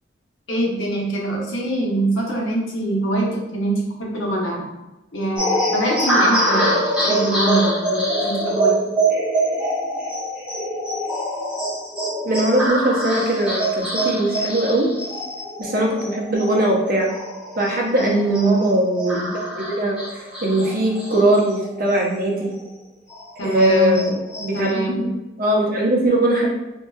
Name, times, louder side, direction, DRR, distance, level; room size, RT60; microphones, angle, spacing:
voice 1, 0.5-4.6 5.1-6.8 7.1-8.8 18.0-18.6 23.4-24.1 24.5-25.1, right 2 dB, 80° left, -3 dB, 0.9 m, -23 dB
sound 1, 5.4-22.3 22.6-22.7 23.1-24.7, right 1 dB, 5° right, 1.0 m, -24 dB
voice 2, 12.2-14.9 15.6-17.1 17.6-22.5 23.4-25.1 25.4-26.5, right 1 dB, 50° right, -1 dB, 0.7 m, -20 dB
3.7 x 2.8 x 2.3 m, 1.0 s
head